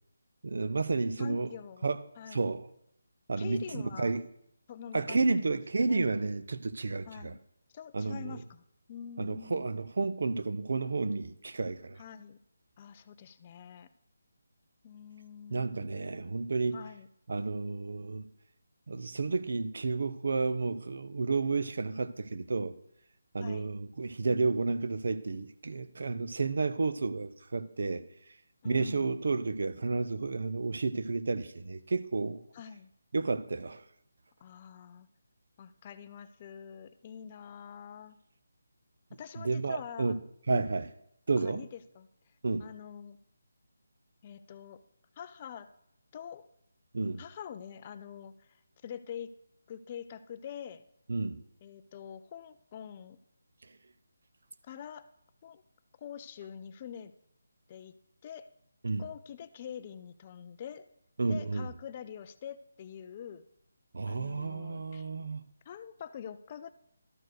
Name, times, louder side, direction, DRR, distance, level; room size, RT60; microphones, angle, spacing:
voice 1, 0.4-1.5 1.8-2.0 2.3-2.7 3.3-4.2 4.9-7.3 7.9-8.4 9.2-12.0 15.5-16.8 17.3-18.3 18.9-22.7 23.3-28.0 28.6-32.4 33.1-33.8 39.4-40.2 40.5-40.8 41.3-41.6 42.4-42.7 46.9-47.2 51.1-51.4 58.8-59.0 61.2-61.7 63.9-65.4, right 3 dB, 60° right, 0.6 m, -31 dB
voice 2, 1.2-1.9 2.2-2.4 3.4-4.2 4.7-6.1 7.1-7.4 7.7-8.6 8.9-9.7 12.0-12.4 12.8-13.9 14.8-16.2 16.7-17.1 23.4-23.7 28.6-29.2 32.5-32.9 34.4-35.1 35.6-38.2 39.1-40.2 40.5-40.7 41.4-42.1 42.6-43.2 44.2-44.8 45.2-45.7 46.1-46.4 47.2-49.3 49.7-50.8 51.6-53.2 54.6-55.1 55.4-55.6 56.0-57.1 57.7-57.9 58.2-58.5 59.0-60.9 61.3-63.5 64.0-65.1 65.7-66.7, left 8 dB, 25° left, 0.3 m, -45 dB
12.5 x 4.6 x 6.2 m
figure-of-eight pair, 170°, 0 cm